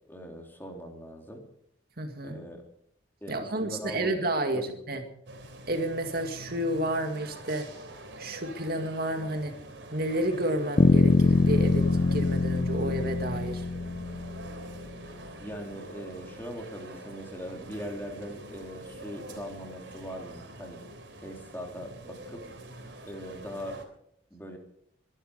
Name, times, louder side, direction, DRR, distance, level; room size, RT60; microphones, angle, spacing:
voice 1, 0.1-1.4 2.2-2.6 3.2-4.2 4.5-4.7 15.4-20.9 21.2-22.4 23.1-23.8 24.3-24.6, equal, 10° left, 1 dB, 3.6 m, -40 dB
voice 2, 2.0-2.4 3.3-5.0 5.7-7.7 8.2-9.5 9.9-11.9 12.1-13.6, right 1 dB, 55° right, 5 dB, 2.1 m, -30 dB
sound 1, 5.3-23.8, right 1 dB, 90° right, 3.4 m, -45 dB
sound 2, 10.8-14.7, left 3 dB, 40° left, 0.5 m, -24 dB
23.0 x 12.0 x 5.1 m, 0.69 s
head